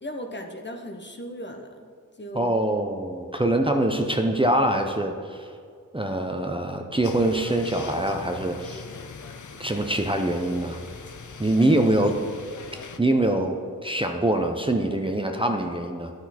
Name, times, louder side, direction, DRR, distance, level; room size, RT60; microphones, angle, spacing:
voice 1, 0.0-1.9 2.2-2.6, equal, 30° left, 4 dB, 0.9 m, -37 dB
voice 2, 2.3-5.5 5.9-8.8 9.6-10.8 11.4-12.2 13.0-16.1, right 1 dB, 15° right, 4 dB, 0.7 m, -24 dB
sound 1, 7.0-13.0, left 4 dB, 60° left, 0.7 m, -41 dB
10.5 x 6.2 x 4.2 m, 2.1 s
cardioid pair, 45°, 35 cm